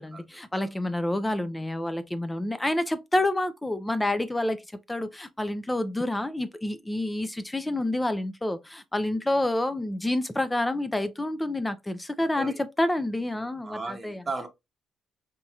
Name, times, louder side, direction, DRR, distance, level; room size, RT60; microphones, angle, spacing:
voice 1, 0.0-14.2, left 1 dB, 10° left, 0.4 m, -28 dB
voice 2, 13.6-14.5, right 3 dB, 25° right, 0.8 m, -36 dB
4.0 x 2.8 x 2.3 m
cardioid pair, 90°, 0 cm